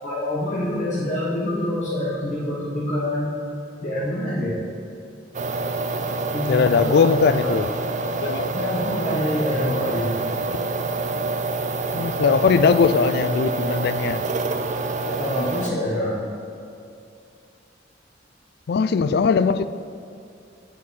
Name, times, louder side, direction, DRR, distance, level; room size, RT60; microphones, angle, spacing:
voice 1, 0.0-3.3 3.8-4.6 6.3-7.1 7.4-7.6 8.5-10.2 15.0-16.3, left 1 dB, 45° left, 1.3 m, -26 dB
sound 1, 5.3-15.7, right 3 dB, 40° right, 0.5 m, -27 dB
voice 2, 6.5-7.7 8.2-8.5 11.9-14.2 18.7-19.7, left 5 dB, 60° left, 0.3 m, -19 dB
9.3 x 7.2 x 4.2 m
head